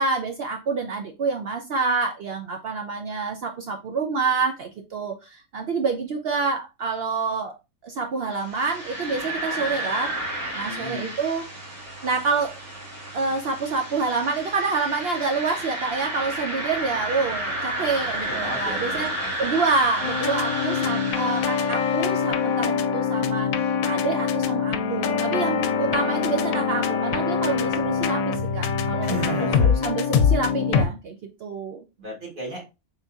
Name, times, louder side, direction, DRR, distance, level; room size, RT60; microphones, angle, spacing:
voice 1, 0.0-7.6 7.8-10.1 10.5-11.5 12.0-12.6 13.1-19.1 19.4-31.2 31.4-31.8, right 4 dB, 70° right, 0.5 m, -27 dB
sound 1, 8.4-22.3, right 1 dB, 50° right, 1.8 m, -32 dB
voice 2, 10.6-11.1 18.3-19.0 29.0-29.7 32.0-32.6, right 1 dB, 35° right, 1.6 m, -33 dB
sound 2, 20.0-30.8, left 6 dB, 75° left, 1.0 m, -24 dB
4.0 x 3.6 x 2.3 m
omnidirectional pair, 1.6 m